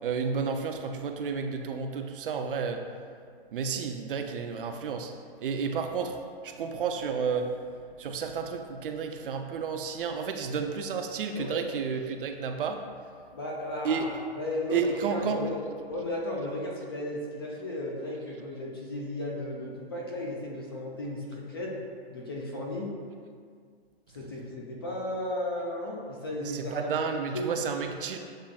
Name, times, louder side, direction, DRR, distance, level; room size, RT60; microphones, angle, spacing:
voice 1, 0.0-2.9 3.5-5.1 5.4-7.5 8.0-12.8 13.8-14.2 14.7-15.5 26.4-28.2, right 5 dB, 60° right, 5 dB, 0.4 m, -31 dB
voice 2, 11.3-11.7 13.3-14.8 15.1-15.6 15.9-21.8 22.1-22.9 24.1-27.5, left 1 dB, 25° left, -2 dB, 0.3 m, -35 dB
7.2 x 2.5 x 2.2 m, 2.1 s
hypercardioid pair, 140°, 32 cm